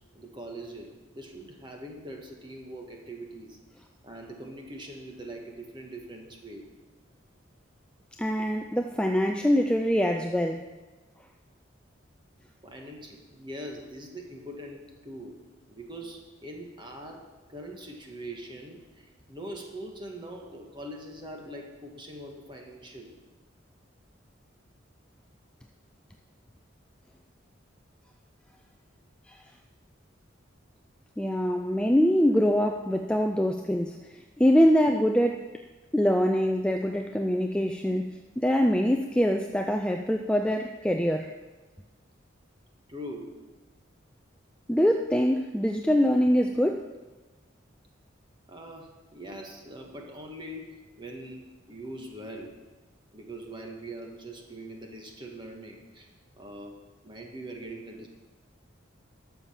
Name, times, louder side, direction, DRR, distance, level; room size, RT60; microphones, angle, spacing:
voice 1, 0.1-3.6 4.0-6.7 12.6-15.4 15.7-23.1 31.8-31.9 42.9-43.4 48.5-52.6 53.1-56.1 56.4-58.1, right 1 dB, 25° right, 1 dB, 1.5 m, -42 dB
voice 2, 8.2-10.7 29.3-29.4 31.2-35.5 35.9-41.3 44.7-46.9, equal, 5° left, 4 dB, 0.3 m, -24 dB
12.0 x 7.1 x 5.6 m, 1.2 s
head